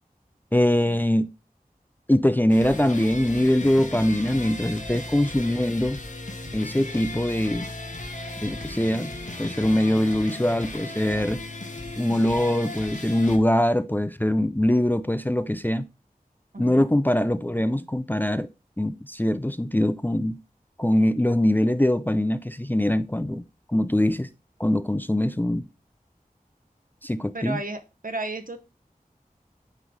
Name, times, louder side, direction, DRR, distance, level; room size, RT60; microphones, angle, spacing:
voice 1, 0.5-1.3 2.1-6.0 6.5-7.7 8.4-9.1 9.4-11.4 12.0-15.9 16.6-18.5 18.8-20.4 20.8-23.4 23.7-24.3 24.6-25.7 27.0-27.6, left 1 dB, 10° left, 0.4 m, -23 dB
sound 1, 2.5-13.4, left 2 dB, 55° left, 1.2 m, -36 dB
voice 2, 16.5-16.9 27.3-28.6, right 2 dB, 65° right, 0.9 m, -33 dB
8.9 x 3.1 x 3.6 m
wide cardioid pair, 40°, 15 cm